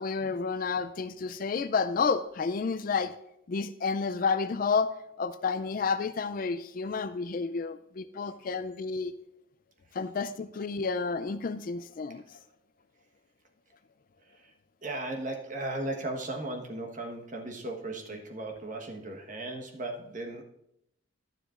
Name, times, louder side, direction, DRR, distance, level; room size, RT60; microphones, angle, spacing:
voice 1, 0.0-3.1 3.5-4.9 5.2-9.1 9.9-12.2, left 5 dB, 40° left, 12 dB, 0.3 m, -30 dB
voice 2, 14.8-20.4, right 2 dB, 35° right, 3 dB, 1.2 m, -36 dB
11.5 x 10.0 x 2.5 m, 0.78 s
head